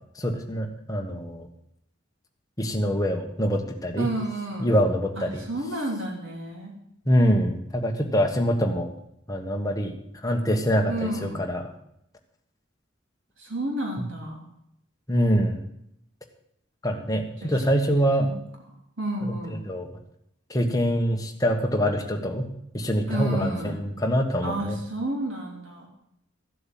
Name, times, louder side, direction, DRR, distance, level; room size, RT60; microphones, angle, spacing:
voice 1, 0.1-1.5 2.6-4.1 4.6-5.4 7.0-8.9 9.3-9.9 10.2-11.6 15.1-15.6 16.8-18.4 19.2-19.3 19.7-19.9 20.5-22.5 22.7-24.8, equal, 15° left, 3 dB, 1.4 m, -24 dB
voice 2, 4.0-4.7 5.2-6.8 10.9-11.4 13.4-14.4 17.4-17.5 18.2-18.3 19.0-19.6 23.1-23.8 24.4-25.9, right 1 dB, 70° right, 0 dB, 3.1 m, -31 dB
14.5 x 7.8 x 7.6 m, 0.76 s
head